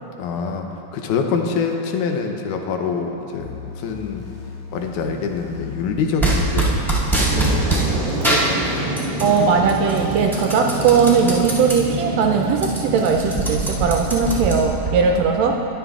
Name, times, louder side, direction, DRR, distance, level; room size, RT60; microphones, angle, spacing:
voice 1, 0.2-0.7 0.9-3.5 3.8-4.2 4.7-6.8 7.2-7.8 15.0-15.5, left 5 dB, 85° left, 3 dB, 2.3 m, -25 dB
sound 1, 3.4-14.6, left 6 dB, 70° left, 2.2 m, -37 dB
sound 2, 6.2-7.9 8.2-9.4 9.7-11.8 12.2-12.3 12.5-14.9, right 2 dB, ahead, 1.6 m, -22 dB
Fire, 6.8-14.5, right 2 dB, 40° right, 1.4 m, -28 dB
voice 2, 9.2-15.5, right 5 dB, 80° right, 2 dB, 1.6 m, -18 dB
21.5 x 7.5 x 2.4 m, 2.9 s
omnidirectional pair, 3.4 m